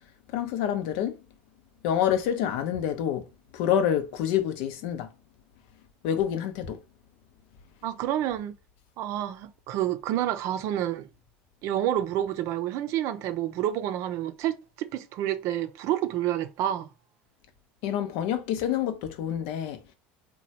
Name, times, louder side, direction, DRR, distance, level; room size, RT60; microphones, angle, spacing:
voice 1, 0.3-1.2 1.8-3.2 3.5-5.1 6.0-6.8 17.8-19.9, left 9 dB, 75° left, 0.5 m, -27 dB
voice 2, 7.8-8.6 9.0-11.1 11.6-16.9, right 12 dB, 65° right, 0.5 m, -29 dB
2.9 x 2.2 x 2.8 m
supercardioid pair, 95°, 6 cm